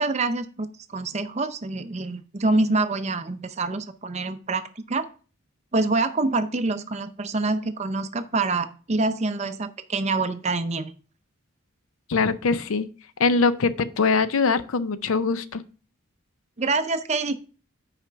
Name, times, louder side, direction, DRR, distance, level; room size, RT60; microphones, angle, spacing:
voice 1, 0.0-5.1 5.7-10.9 16.6-17.4, right 3 dB, 30° right, 10 dB, 0.5 m, -26 dB
voice 2, 12.1-12.9 13.2-15.6, left 4 dB, 85° left, 14 dB, 0.5 m, -22 dB
5.8 x 5.0 x 5.7 m, 0.38 s
head